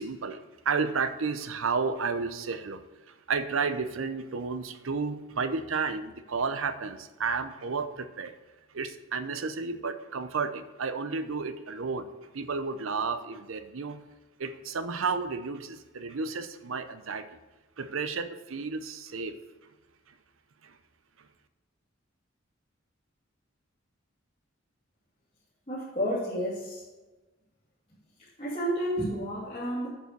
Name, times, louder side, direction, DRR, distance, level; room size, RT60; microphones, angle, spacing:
voice 1, 0.0-8.3 8.7-14.0 14.4-17.4 17.8-19.4 20.6-20.8, right 4 dB, 80° right, 11 dB, 0.7 m, -32 dB
voice 2, 25.7-26.8 28.2-29.9, equal, 30° left, -10 dB, 2.6 m, -31 dB
8.8 x 5.5 x 6.6 m, 1.1 s
head